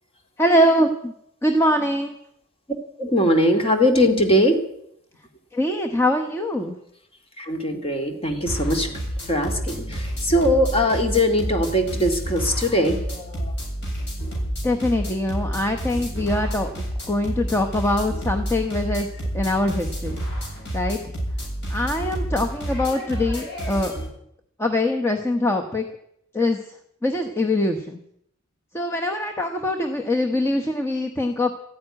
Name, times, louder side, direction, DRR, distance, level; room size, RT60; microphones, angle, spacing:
voice 1, 0.4-1.1 1.4-2.1 5.5-6.8 14.6-16.7 17.1-19.1 19.3-20.2 20.7-21.0 21.7-23.9 24.6-25.9 26.3-26.6 27.0-28.0 28.7-31.5, left 1 dB, 10° left, 4 dB, 1.0 m, -23 dB
voice 2, 3.0-4.6 7.4-8.9 9.3-13.5, equal, 30° left, 4 dB, 2.3 m, -21 dB
sound 1, 8.5-24.1, equal, 55° left, 7.6 m, -29 dB
14.5 x 9.5 x 9.7 m, 0.73 s
head